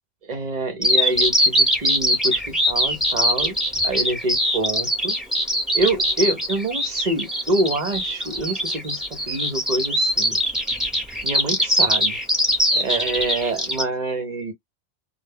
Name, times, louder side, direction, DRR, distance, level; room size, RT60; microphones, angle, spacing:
voice 1, 0.3-3.6 3.8-5.1 5.7-10.4 11.2-12.2 12.7-14.5, right 2 dB, 50° right, 0.6 m, -26 dB
Bird vocalization bird call bird song, 0.8-13.8, equal, ahead, 0.8 m, -21 dB
2.1 x 2.1 x 3.2 m
omnidirectional pair, 1.1 m